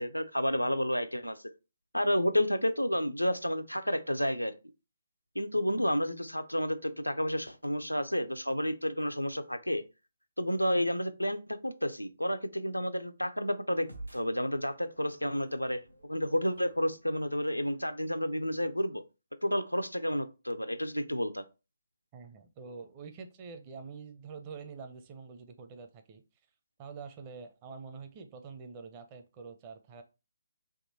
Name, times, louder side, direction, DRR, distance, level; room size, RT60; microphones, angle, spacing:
voice 1, 0.0-1.4 1.9-4.5 5.4-9.8 10.4-19.0 19.4-21.5, equal, 90° left, 0.5 m, -31 dB
sound 1, 13.7-18.4, right 2 dB, 85° right, 1.1 m, -52 dB
voice 2, 22.1-26.2 26.8-30.0, right 5 dB, 25° right, 0.6 m, -46 dB
3.6 x 2.7 x 4.1 m
figure-of-eight pair, 140°, 0 cm